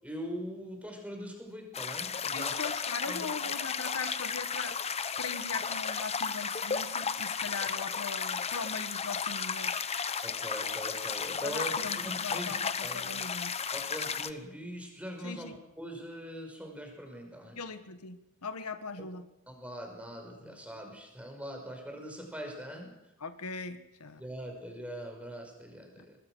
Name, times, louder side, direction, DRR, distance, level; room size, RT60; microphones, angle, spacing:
voice 1, 0.0-2.6 3.1-3.3 10.2-12.6 12.8-13.3 13.7-15.5 15.8-17.6 19.0-19.1 19.5-22.9 24.2-26.2, equal, 5° right, 2 dB, 5.5 m, -42 dB
sound 1, 1.7-14.3, left 6 dB, 30° left, 0.9 m, -34 dB
voice 2, 2.3-4.8 5.2-9.9 11.4-13.6 15.2-15.5 17.5-19.3 20.4-20.5 23.2-24.2 26.0-26.1, left 4 dB, 90° left, 10 dB, 1.5 m, -40 dB
24.5 x 20.5 x 6.3 m, 0.90 s
head